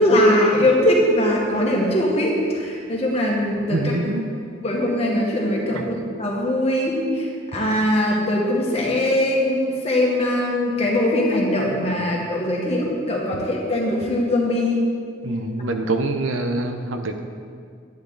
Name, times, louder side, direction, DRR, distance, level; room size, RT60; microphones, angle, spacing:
voice 1, 0.0-3.8 4.6-7.0 7.5-14.8, left 1 dB, 30° left, -3 dB, 1.7 m, -21 dB
voice 2, 3.7-4.3 5.7-5.8 15.2-17.2, right 2 dB, 90° right, 6 dB, 0.9 m, -25 dB
10.5 x 10.5 x 4.0 m, 2.3 s
head